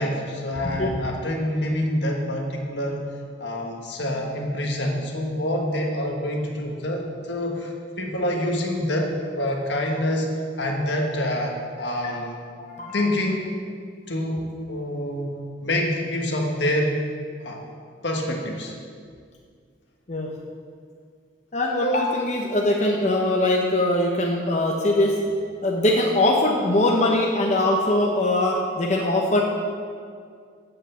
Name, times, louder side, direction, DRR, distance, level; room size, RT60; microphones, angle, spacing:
voice 1, 0.0-3.1 3.4-10.3 10.6-12.4 12.9-13.4 14.1-15.3 15.6-17.0 17.4-17.6 18.0-18.7, left 1 dB, 70° left, 1 dB, 1.4 m, -26 dB
voice 2, 12.6-13.0 20.1-20.3 21.5-25.1 25.6-29.4, left 1 dB, 40° left, -1 dB, 0.9 m, -21 dB
8.0 x 7.8 x 6.7 m, 2.1 s
head